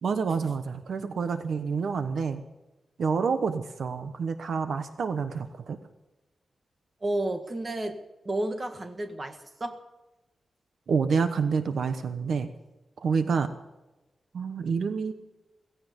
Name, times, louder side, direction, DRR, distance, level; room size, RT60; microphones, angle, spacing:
voice 1, 0.0-2.4 3.0-5.8 10.9-12.5 13.0-13.5 14.3-15.1, right 5 dB, 65° right, 9 dB, 1.0 m, -28 dB
voice 2, 7.0-8.0 8.2-9.8, right 1 dB, 25° right, 6 dB, 1.7 m, -31 dB
16.5 x 16.0 x 5.3 m, 1.0 s
wide cardioid pair, 175°, 0 cm